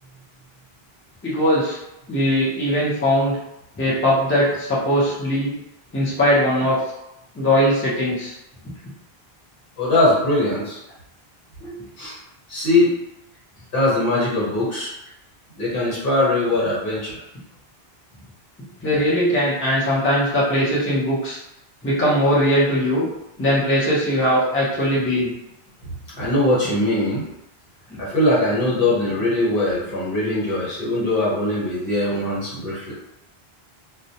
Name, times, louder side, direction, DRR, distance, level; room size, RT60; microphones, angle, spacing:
voice 1, 1.2-1.8 2.1-3.4 3.8-5.6 5.9-6.8 7.3-8.3 11.6-11.7 18.8-21.4 21.8-23.1 23.4-25.3 27.9-28.0, equal, 15° left, -8 dB, 0.6 m, -20 dB
voice 2, 9.8-10.8 12.0-12.1 12.5-12.9 13.7-14.9 15.6-17.1 26.2-27.2 28.0-32.9, left 2 dB, 60° left, -7 dB, 1.2 m, -21 dB
2.2 x 2.1 x 2.7 m, 0.86 s
omnidirectional pair, 1.1 m